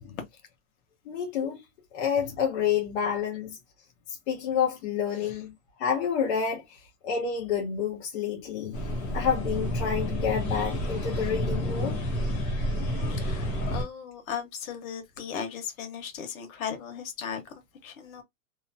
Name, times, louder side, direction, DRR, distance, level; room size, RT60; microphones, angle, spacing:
voice 1, 1.1-1.6 1.9-3.6 4.3-5.5 5.8-6.8 7.0-12.0, left 7 dB, 55° left, 0.8 m, -29 dB
sound 1, 8.7-13.8, equal, 20° left, 0.6 m, -29 dB
voice 2, 13.1-18.2, left 7 dB, 90° left, 1.2 m, -37 dB
2.9 x 2.0 x 2.5 m
supercardioid pair, 175°, 41 cm